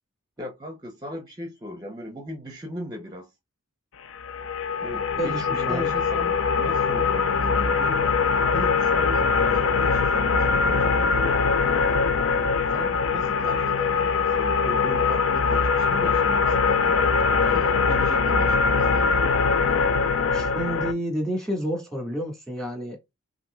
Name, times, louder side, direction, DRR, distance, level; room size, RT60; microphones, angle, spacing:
voice 1, 0.4-3.3 4.8-8.1 8.3-11.4 12.7-17.0 17.3-19.3, equal, 20° right, 0.7 m, -38 dB
sound 1, 4.1-20.9, left 5 dB, 60° left, 0.5 m, -22 dB
voice 2, 5.2-5.9 19.7-19.8 20.3-23.0, equal, 5° left, 1.6 m, -30 dB
5.8 x 2.6 x 2.2 m
head